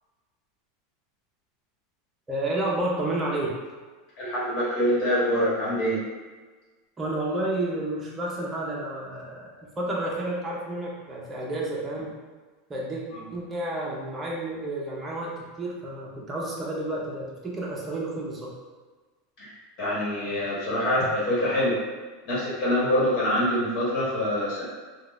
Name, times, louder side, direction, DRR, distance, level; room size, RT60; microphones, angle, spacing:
voice 1, 2.3-3.6 7.0-12.1 12.7-13.0 13.3-18.5, right 1 dB, 15° right, -4 dB, 0.7 m, -30 dB
voice 2, 4.2-6.0 19.4-19.5 19.8-21.8 22.2-24.6, equal, 50° left, -8 dB, 1.3 m, -25 dB
3.7 x 2.3 x 2.5 m, 1.3 s
supercardioid pair, 140°, 0 cm